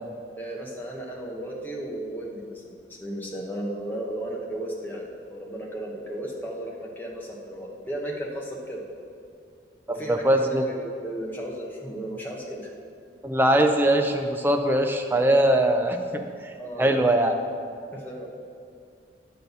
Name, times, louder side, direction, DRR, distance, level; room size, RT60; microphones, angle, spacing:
voice 1, 0.4-2.6 2.9-8.8 9.9-12.7 16.6-17.1 17.9-18.3, right 1 dB, 10° left, -3 dB, 1.0 m, -35 dB
voice 2, 9.9-10.6 13.2-16.5 16.8-17.3, right 1 dB, 10° right, 4 dB, 0.4 m, -22 dB
8.6 x 4.0 x 7.0 m, 2.3 s
head